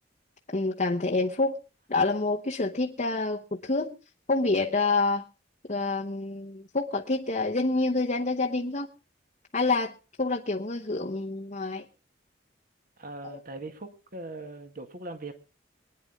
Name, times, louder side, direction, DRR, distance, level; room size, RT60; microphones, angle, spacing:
voice 1, 0.5-1.6 1.9-3.9 4.3-5.2 5.7-8.9 9.5-11.8 13.2-13.4, left 3 dB, 40° left, 1.0 m, -27 dB
voice 2, 13.0-15.3, right 2 dB, 45° right, 1.9 m, -40 dB
24.5 x 9.8 x 3.7 m
head